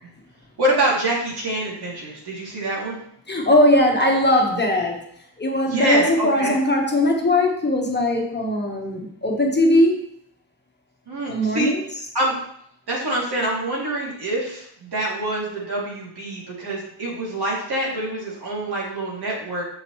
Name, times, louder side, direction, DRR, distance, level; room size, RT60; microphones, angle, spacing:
voice 1, 0.6-3.0 5.7-6.6 11.1-11.7 12.1-12.3 12.9-19.6, right 1 dB, 65° right, -4 dB, 2.8 m, -25 dB
voice 2, 3.3-5.0 5.4-10.0 11.3-11.8, left 1 dB, 25° left, 1 dB, 1.2 m, -19 dB
6.6 x 5.9 x 3.1 m, 0.71 s
cardioid pair, 90°, 42 cm